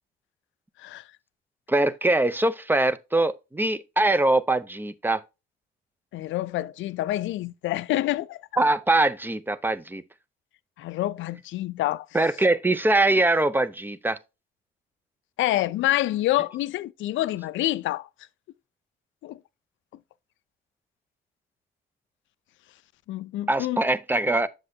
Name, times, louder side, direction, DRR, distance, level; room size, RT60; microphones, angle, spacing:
voice 1, 1.7-5.2 8.6-10.0 12.1-14.2 23.5-24.5, right 2 dB, 10° right, 0.5 m, -22 dB
voice 2, 6.1-8.5 10.8-12.1 15.4-18.1 19.2-19.4 23.1-23.8, left 15 dB, 75° left, 0.4 m, -27 dB
7.6 x 6.3 x 2.7 m
cardioid pair, 90°, 20 cm